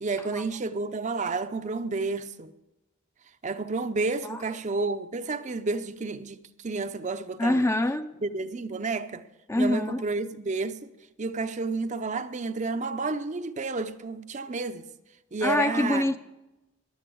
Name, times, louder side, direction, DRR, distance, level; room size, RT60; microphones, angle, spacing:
voice 1, 0.0-2.5 3.4-7.6 8.2-9.2 9.5-10.9 11.2-14.8 15.3-16.1, right 3 dB, 35° right, 0.6 m, -31 dB
voice 2, 7.4-8.1 9.5-10.0 15.4-16.2, left 1 dB, 15° left, 0.5 m, -25 dB
14.5 x 10.5 x 8.4 m
head